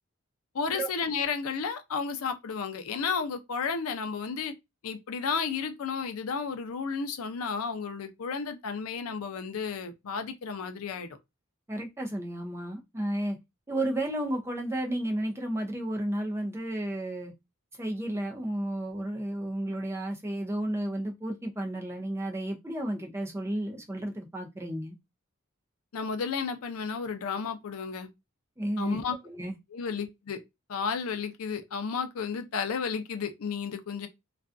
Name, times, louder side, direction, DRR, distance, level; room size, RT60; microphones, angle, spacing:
voice 1, 0.5-4.5 4.8-11.1 25.9-28.1 28.8-29.2 29.7-30.4 30.7-34.1, left 5 dB, 85° left, 0.5 m, -32 dB
voice 2, 11.7-13.4 13.7-17.3 17.8-25.0 28.6-29.0 29.2-29.6, right 1 dB, 10° right, 0.4 m, -32 dB
2.4 x 2.2 x 2.4 m
head